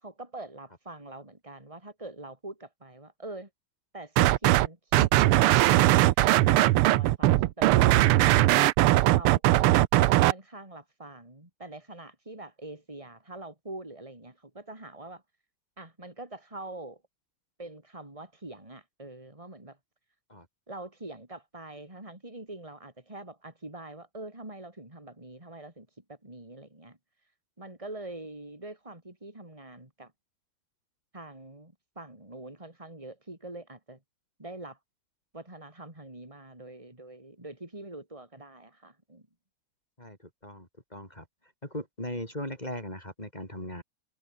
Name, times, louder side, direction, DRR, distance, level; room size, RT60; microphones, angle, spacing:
voice 1, 0.0-3.5 3.9-6.0 6.3-8.7 9.1-15.2 15.8-17.0 17.6-19.8 20.7-27.0 27.6-30.1 31.1-34.0 34.4-34.8 35.3-39.3, right 2 dB, 15° right, 5.2 m, -44 dB
sound 1, 4.2-4.7 4.9-10.3, right 16 dB, 85° right, 1.6 m, -20 dB
voice 2, 40.4-41.3 41.6-43.8, left 1 dB, 20° left, 5.4 m, -38 dB
omnidirectional pair, 2.4 m